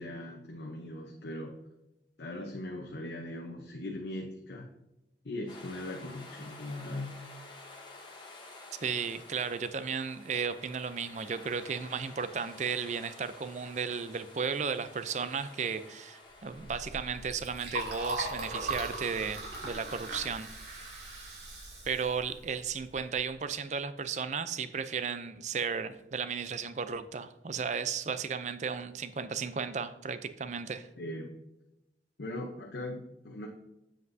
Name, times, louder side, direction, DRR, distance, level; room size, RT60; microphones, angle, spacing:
voice 1, 0.0-1.6 2.2-4.7 5.2-7.2 31.0-31.3 32.2-33.5, left 1 dB, 70° left, 1 dB, 0.8 m, -39 dB
sound 1, 5.5-17.3, left 2 dB, 25° left, 1.3 m, -51 dB
voice 2, 8.8-21.0 21.9-30.9, right 6 dB, 40° right, 12 dB, 0.4 m, -34 dB
Liquid, 16.5-23.1, right 1 dB, 85° right, 2.4 m, -39 dB
7.9 x 7.5 x 2.7 m, 0.91 s
head